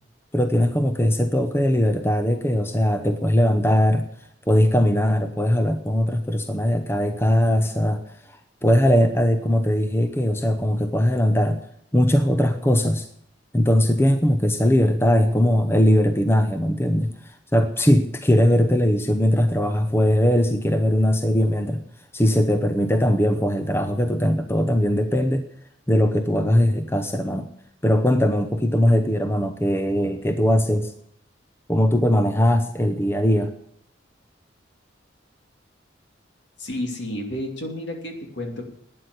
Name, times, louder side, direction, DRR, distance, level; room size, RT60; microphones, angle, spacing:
voice 1, 0.3-4.1 4.5-8.0 8.3-11.6 11.9-13.1 13.5-21.8 22.1-25.4 25.9-27.5 27.8-30.9 31.7-33.5, equal, 15° left, 7 dB, 0.8 m, -20 dB
voice 2, 36.6-38.6, left 1 dB, 65° left, 3 dB, 2.7 m, -31 dB
12.0 x 9.5 x 8.3 m, 0.69 s
head